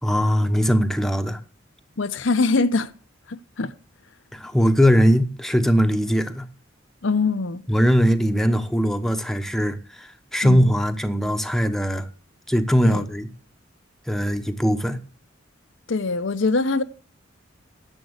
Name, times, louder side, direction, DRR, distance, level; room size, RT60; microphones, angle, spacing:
voice 1, 0.0-1.4 4.3-6.4 7.7-12.1 12.5-13.3 14.1-15.0, equal, ahead, 1.0 m, -20 dB
voice 2, 2.0-2.9 3.3-3.7 7.0-7.6 10.4-10.7 12.8-13.0 15.9-16.8, left 3 dB, 70° left, 0.8 m, -23 dB
10.5 x 7.6 x 8.0 m
head